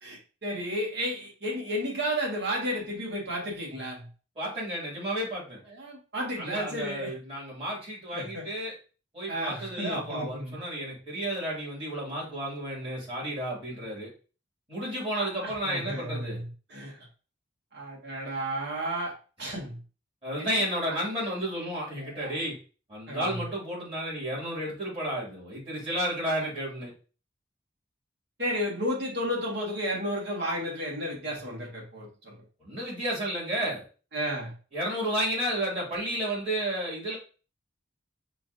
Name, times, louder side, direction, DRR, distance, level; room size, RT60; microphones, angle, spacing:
voice 1, 0.0-4.1 5.7-7.1 8.1-8.5 9.3-10.6 15.2-17.0 17.7-19.1 19.4-19.8 20.4-20.6 20.9-21.0 22.0-22.3 23.1-23.4 28.4-32.3 34.1-34.5, equal, 55° right, -2 dB, 1.6 m, -33 dB
voice 2, 4.4-5.6 6.4-8.7 9.1-14.1 14.7-16.4 20.2-22.5 22.9-26.9 32.6-33.8 34.7-37.2, right 1 dB, 30° right, -6 dB, 2.3 m, -32 dB
5.6 x 2.6 x 2.6 m, 0.36 s
head